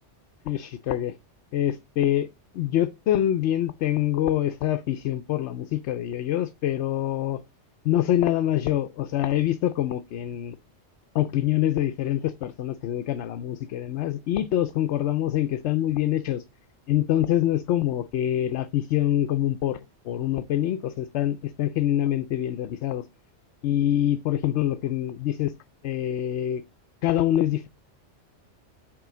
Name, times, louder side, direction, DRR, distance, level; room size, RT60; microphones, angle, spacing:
voice 1, 0.5-1.1 1.5-2.3 2.5-7.4 7.8-10.6 11.1-16.4 16.9-19.8 20.0-23.0 23.6-25.5 25.8-26.6 27.0-27.7, left 12 dB, 70° left, 0.9 m, -25 dB
8.5 x 3.1 x 6.1 m
omnidirectional pair, 1.2 m